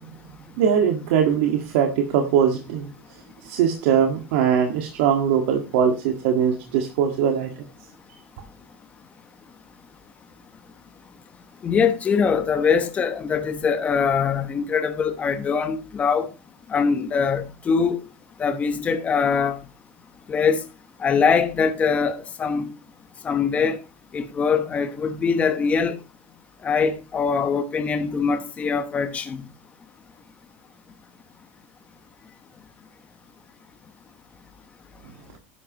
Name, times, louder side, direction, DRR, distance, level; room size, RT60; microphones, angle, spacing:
voice 1, 0.6-2.9 3.4-7.6, right 8 dB, 70° right, 1.7 m, -21 dB
voice 2, 11.6-16.3 16.7-18.0 18.4-19.6 20.3-20.6 21.0-22.7 23.2-23.8 24.1-26.0 26.6-29.4, left 6 dB, 20° left, 1.0 m, -22 dB
12.5 x 11.0 x 3.0 m
supercardioid pair, 160°, 7 cm